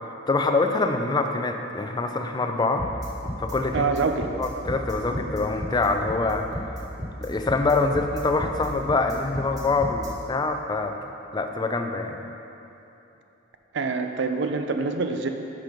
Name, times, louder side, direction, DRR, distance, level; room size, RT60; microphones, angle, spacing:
voice 1, 0.3-2.9 3.4-3.9 4.4-6.5 7.2-11.0 11.3-12.2, left 3 dB, 20° left, 5 dB, 0.4 m, -25 dB
sound 1, 2.8-10.1, equal, 20° right, 1.3 m, -34 dB
voice 2, 3.7-4.3 13.7-15.3, right 4 dB, 65° right, 6 dB, 0.5 m, -25 dB
6.0 x 5.1 x 6.0 m, 3.0 s
head